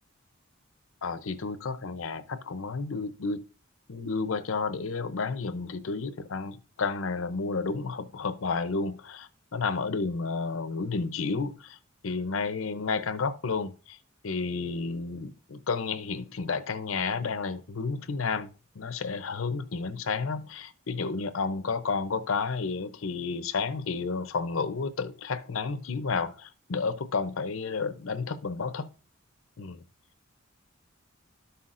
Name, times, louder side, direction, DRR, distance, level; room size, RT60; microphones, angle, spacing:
voice 1, 1.0-3.4 3.9-11.8 12.0-14.0 14.2-28.9 29.6-29.8, left 4 dB, 75° left, 0.7 m, -31 dB
13.0 x 5.7 x 2.5 m
head